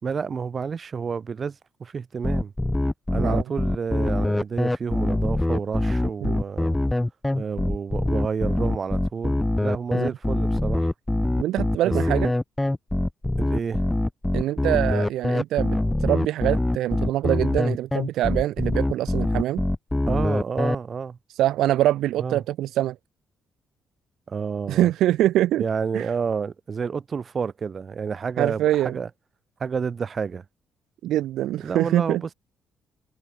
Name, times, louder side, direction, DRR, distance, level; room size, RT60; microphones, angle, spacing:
voice 1, 0.0-2.5 3.1-6.7 7.3-10.9 11.8-12.2 13.4-13.8 20.1-21.2 22.2-22.4 24.3-24.9 25.6-29.1 29.6-30.4 31.6-32.3, right 6 dB, 40° right, 2.0 m, -30 dB
sound 1, 2.2-20.7, left 1 dB, 10° left, 2.0 m, -24 dB
voice 2, 11.4-12.3 14.3-19.6 21.3-23.0 24.7-25.6 25.9-26.1 28.4-29.0 31.0-32.2, right 13 dB, 85° right, 0.4 m, -24 dB
cardioid pair, 90°, 0 cm